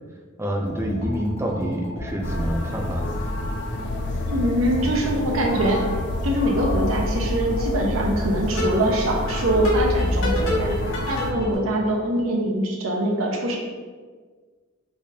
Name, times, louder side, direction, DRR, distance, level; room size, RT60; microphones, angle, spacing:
voice 1, 0.4-3.2, equal, 15° right, 1 dB, 0.4 m, -27 dB
sound 1, 0.6-11.5, left 1 dB, 75° left, 1.3 m, -30 dB
sound 2, 2.2-11.3, left 1 dB, 55° left, 0.5 m, -28 dB
voice 2, 4.2-5.8 6.2-13.6, right 1 dB, 75° right, 0 dB, 0.8 m, -23 dB
4.9 x 3.4 x 2.8 m, 1.5 s
head